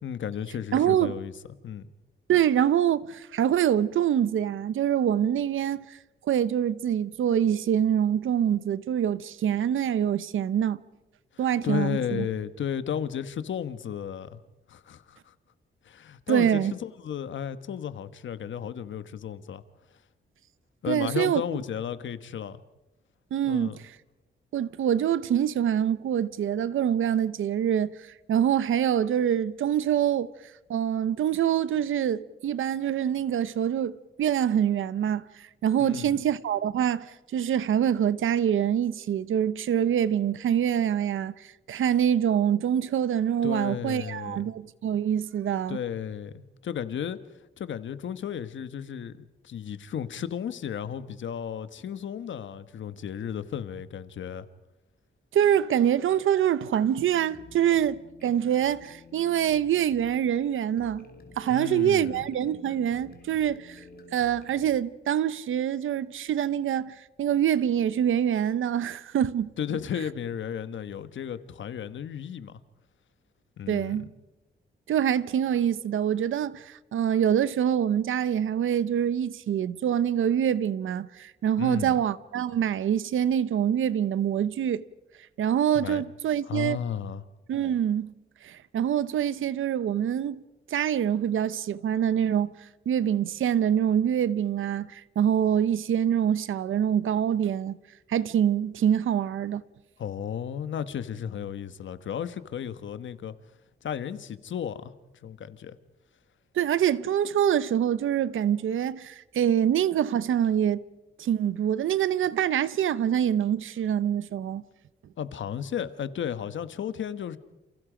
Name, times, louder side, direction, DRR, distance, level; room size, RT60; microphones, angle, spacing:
voice 1, 0.0-1.3 1.6-1.9 11.3-14.4 14.7-15.3 15.8-19.6 20.8-22.6 23.4-23.8 35.8-36.2 43.4-44.5 45.7-47.2 47.6-54.5 61.5-62.2 69.6-72.6 73.6-74.0 81.6-82.0 85.7-86.0 86.4-87.2 100.0-103.3 103.8-104.9 105.2-105.8 115.2-117.4, left 8 dB, 70° left, 1.3 m, -34 dB
voice 2, 0.7-1.2 2.3-6.0 6.3-10.8 11.4-12.3 16.3-16.7 20.9-21.4 23.3-23.8 24.5-28.0 28.3-30.3 30.7-35.3 35.6-45.8 55.3-61.0 61.4-63.8 64.1-69.5 73.7-74.1 74.9-84.8 85.4-86.8 87.5-88.1 88.4-90.4 90.7-92.5 92.9-97.8 98.1-99.6 106.6-110.8 111.2-114.6, right 9 dB, 85° right, 0.9 m, -25 dB
sound 1, 57.0-64.8, left 4 dB, 50° left, 3.0 m, -51 dB
29.0 x 29.0 x 5.1 m
wide cardioid pair, 135°, 20 cm